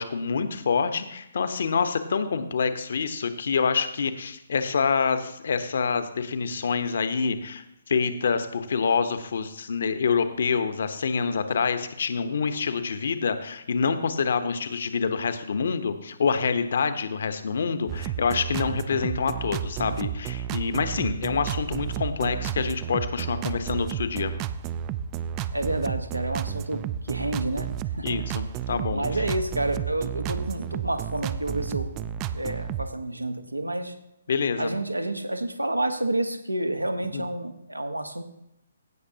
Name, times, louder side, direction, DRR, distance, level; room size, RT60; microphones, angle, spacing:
voice 1, 0.0-24.3 28.0-29.0 34.3-34.7 37.1-37.3, left 5 dB, 55° left, 10 dB, 1.0 m, -26 dB
sound 1, 17.9-32.9, right 9 dB, 25° right, 0.4 m, -31 dB
voice 2, 25.5-27.7 27.9-28.2 28.9-31.9 32.3-33.9 34.6-38.2, right 1 dB, 90° right, 7 dB, 1.2 m, -29 dB
16.5 x 6.7 x 2.8 m, 0.81 s
figure-of-eight pair, 130°, 0 cm